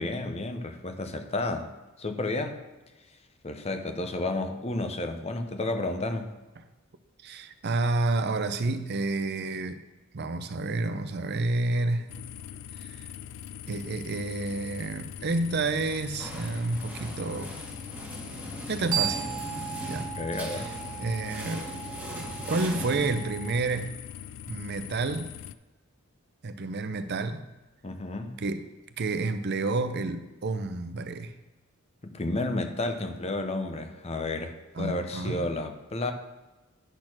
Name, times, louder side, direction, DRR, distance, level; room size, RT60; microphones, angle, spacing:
voice 1, 0.0-1.7 2.0-2.6 3.4-6.3 20.2-20.7 27.8-28.4 32.0-36.1, left 2 dB, 30° left, 7 dB, 0.7 m, -31 dB
voice 2, 7.2-9.8 10.1-12.2 12.8-13.1 13.7-17.5 18.7-19.3 19.8-20.2 20.5-20.7 21.0-21.7 22.5-24.0 24.5-25.3 26.4-27.5 28.4-28.7 29.0-31.4 34.7-35.5, right 3 dB, 50° right, 10 dB, 0.5 m, -30 dB
sound 1, 12.1-25.5, left 9 dB, 60° left, 0.3 m, -42 dB
sound 2, 15.8-23.7, right 1 dB, 10° right, 1.6 m, -40 dB
sound 3, 18.5-23.6, right 10 dB, 85° right, 1.0 m, -36 dB
10.0 x 4.3 x 6.0 m, 1.1 s
head